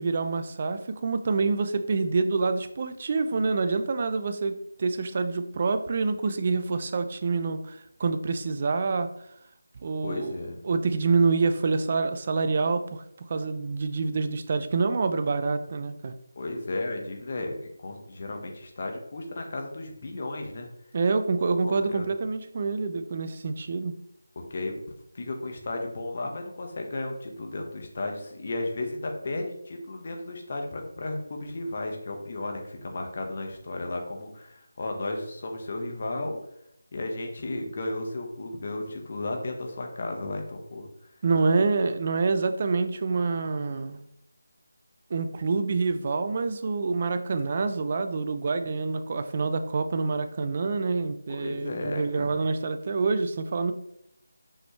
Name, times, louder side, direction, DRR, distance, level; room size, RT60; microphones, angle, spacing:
voice 1, 0.0-9.1 9.8-10.3 10.6-16.1 20.9-24.0 41.2-44.0 45.1-53.7, right 4 dB, 35° right, 9 dB, 0.5 m, -27 dB
voice 2, 10.0-10.6 16.3-20.7 21.6-22.1 24.3-24.8 25.1-36.3 36.9-40.9 51.3-52.3, left 2 dB, 40° left, 3 dB, 1.4 m, -34 dB
6.1 x 5.6 x 3.3 m, 0.77 s
figure-of-eight pair, 165°, 0 cm